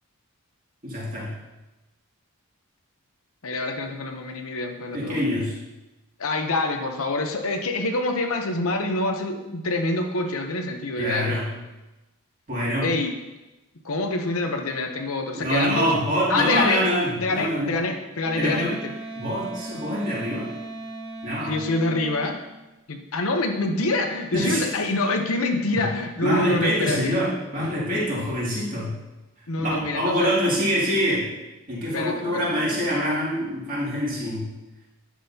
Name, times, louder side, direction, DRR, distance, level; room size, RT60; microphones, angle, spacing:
voice 1, 0.8-1.3 4.9-5.5 11.0-11.5 12.5-12.9 15.3-17.7 18.4-18.7 19.2-20.5 21.2-21.5 24.3-24.7 25.7-25.8 26.2-28.9 29.6-31.2 31.7-34.5, equal, 35° right, -7 dB, 2.4 m, -25 dB
voice 2, 3.4-5.3 6.2-11.3 12.8-13.1 13.8-15.9 16.3-16.8 17.2-18.8 21.4-22.4 22.9-27.2 29.5-30.4 31.9-32.5, left 2 dB, 70° left, 4 dB, 0.8 m, -26 dB
Wind instrument woodwind instrument, 18.2-22.4, right 1 dB, 65° right, 2.9 m, -37 dB
9.9 x 6.2 x 2.8 m, 1.0 s
head